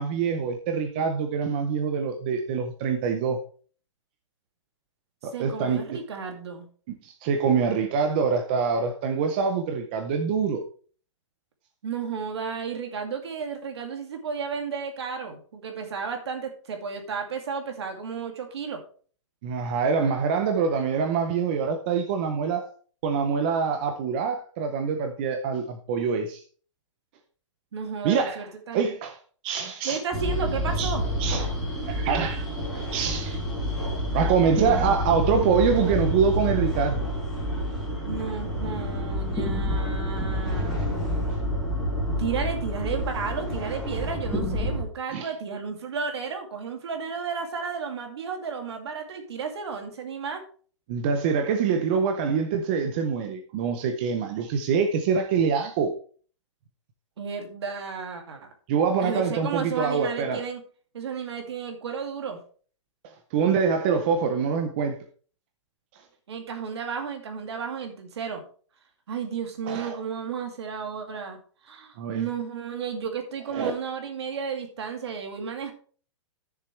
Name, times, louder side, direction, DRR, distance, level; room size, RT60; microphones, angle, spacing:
voice 1, 0.0-3.4 5.2-5.9 6.9-10.6 19.4-22.7 23.0-26.4 28.0-28.5 28.7-29.2 29.4-30.0 30.8-30.9 31.2-31.5 31.8-32.5 32.9-33.4 34.1-37.1 41.3-41.4 45.1-45.3 50.9-55.9 58.7-60.4 63.0-65.0 69.7-70.0 72.0-72.3 73.5-73.7, right 6 dB, 20° right, 0.6 m, -25 dB
voice 2, 5.3-6.7 11.8-18.8 27.7-28.9 29.8-31.0 34.6-34.8 38.1-40.9 42.2-50.4 57.2-58.5 59.0-60.6 60.9-62.4 66.3-68.4 69.1-71.4 71.6-75.7, right 6 dB, 55° right, 2.4 m, -33 dB
sound 1, 30.1-44.8, equal, ahead, 3.1 m, -28 dB
13.0 x 7.0 x 3.2 m
hypercardioid pair, 175°, 16 cm